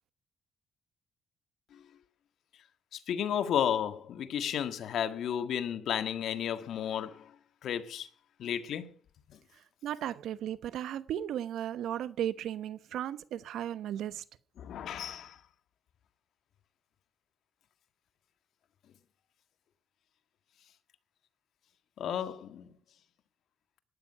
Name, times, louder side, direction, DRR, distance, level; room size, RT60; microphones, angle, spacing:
voice 1, 2.9-7.2 7.6-8.1 8.4-8.9 14.6-15.4 22.0-22.7, left 9 dB, 70° left, 1.7 m, -33 dB
voice 2, 9.8-14.2, right 10 dB, 80° right, 1.0 m, -35 dB
18.0 x 12.5 x 5.7 m
cardioid pair, 90°, 0 cm